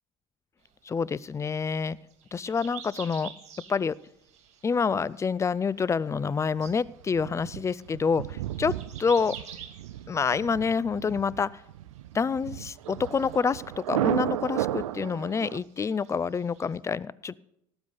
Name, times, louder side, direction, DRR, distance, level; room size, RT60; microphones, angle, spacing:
sound 1, 0.6-5.5 5.8-6.3 6.6-11.7 11.9-14.0 14.3-16.8, right 8 dB, 40° right, 2.4 m, -49 dB
voice 1, 0.8-2.0 2.3-3.3 3.7-4.0 4.6-9.3 10.1-11.5 12.1-17.4, left 5 dB, 15° left, 21 dB, 0.4 m, -27 dB
Thunder, 6.6-15.6, right 13 dB, 70° right, 0.5 m, -34 dB
17.5 x 8.0 x 5.4 m, 0.80 s
figure-of-eight pair, 60°, 18 cm